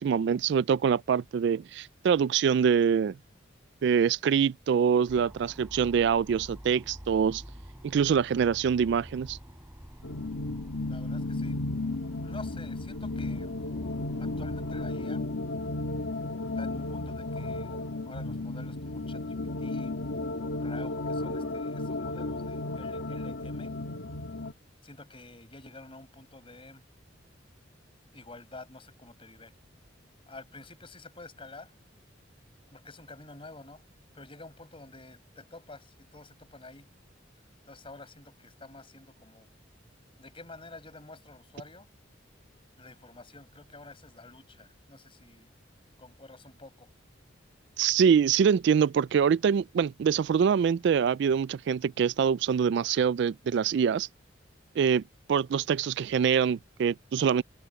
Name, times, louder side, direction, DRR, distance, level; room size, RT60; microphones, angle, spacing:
voice 1, 0.0-3.2 3.8-7.4 7.8-9.4 47.8-54.1 54.8-55.0 55.3-57.4, right 7 dB, 60° right, 0.3 m, -24 dB
sound 1, 5.1-14.9, equal, 15° right, 3.7 m, -48 dB
sound 2, 10.0-24.5, left 2 dB, 90° left, 1.6 m, -34 dB
voice 2, 10.8-11.6 12.2-13.6 14.2-15.3 16.6-17.8 18.0-20.0 20.6-23.8 24.8-26.8 28.1-29.5 30.3-31.7 32.7-33.8 34.1-36.9 37.6-39.5 40.2-41.9 42.8-45.5 46.0-46.9, left 2 dB, 30° left, 5.7 m, -49 dB
head